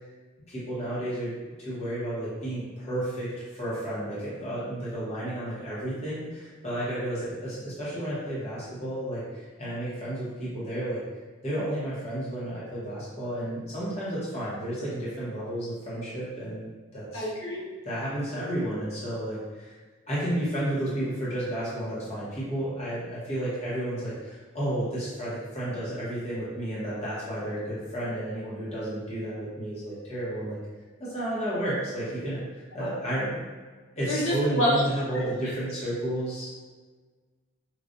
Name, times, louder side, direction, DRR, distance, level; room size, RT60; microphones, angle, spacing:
voice 1, 0.5-1.3 1.6-11.0 11.4-17.2 17.8-19.7 20.1-30.6 31.0-33.4 34.0-36.5, right 1 dB, 30° left, -9 dB, 1.0 m, -32 dB
voice 2, 17.1-17.6 34.1-34.8 35.1-35.2, equal, 85° left, -8 dB, 1.2 m, -27 dB
4.7 x 2.3 x 2.6 m, 1.4 s
head